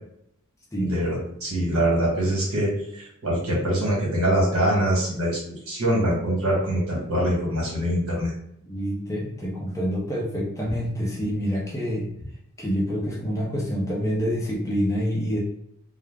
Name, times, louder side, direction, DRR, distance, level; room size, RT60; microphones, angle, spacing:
voice 1, 0.8-5.4 5.7-8.3, right 1 dB, 75° right, -4 dB, 1.2 m, -24 dB
voice 2, 8.6-12.1 12.6-15.4, equal, 15° left, -3 dB, 0.5 m, -27 dB
2.3 x 2.0 x 3.3 m, 0.72 s
head